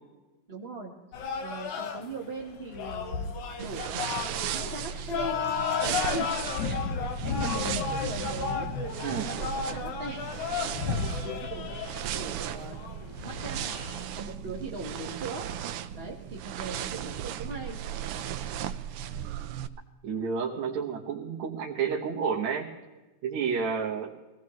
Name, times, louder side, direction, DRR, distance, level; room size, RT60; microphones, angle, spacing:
voice 1, 0.5-0.9 1.4-4.2 4.5-5.4 5.8-8.7 9.1-10.3 10.8-11.7 12.1-12.7 13.2-13.8 14.2-15.5 15.9-17.8, right 2 dB, 35° right, -2 dB, 1.0 m, -40 dB
sound 1, 1.1-14.1, left 6 dB, 90° left, 2.8 m, -33 dB
sound 2, 3.6-19.7, right 10 dB, 90° right, 1.2 m, -36 dB
voice 2, 20.0-22.7 23.2-24.1, right 6 dB, 75° right, -1 dB, 2.5 m, -30 dB
24.5 x 17.5 x 3.2 m, 1.2 s
omnidirectional pair, 3.3 m